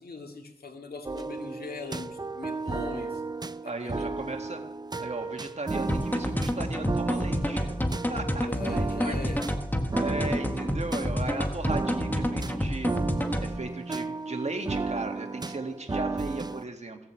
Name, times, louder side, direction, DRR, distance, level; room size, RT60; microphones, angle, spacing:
voice 1, 0.0-3.2 3.6-4.1 8.4-9.5, left 4 dB, 70° left, 4 dB, 2.1 m, -40 dB
sound 1, 1.0-16.6, right 3 dB, 25° right, 0.5 m, -34 dB
voice 2, 3.6-4.6 5.0-7.8 8.1-9.3 10.0-12.9 13.4-17.0, right 2 dB, 45° right, 4 dB, 2.0 m, -36 dB
sound 2, 5.9-13.6, equal, 10° left, 1.4 m, -29 dB
16.0 x 8.0 x 7.8 m, 0.91 s
wide cardioid pair, 95°, 16 cm